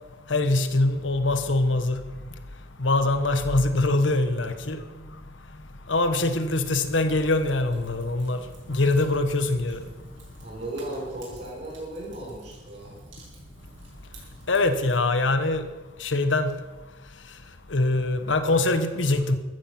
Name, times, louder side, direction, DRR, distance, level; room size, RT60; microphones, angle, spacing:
voice 1, 0.3-2.0 2.8-4.8 5.9-8.4 8.7-9.8 14.5-15.6 16.0-16.5 17.7-19.3, left 2 dB, 90° left, 9 dB, 1.2 m, -23 dB
Fire, 6.6-15.0, right 1 dB, 85° right, 6.1 m, -48 dB
voice 2, 10.4-13.0, right 1 dB, 45° right, -5 dB, 4.3 m, -36 dB
14.5 x 13.0 x 5.9 m, 1.1 s
head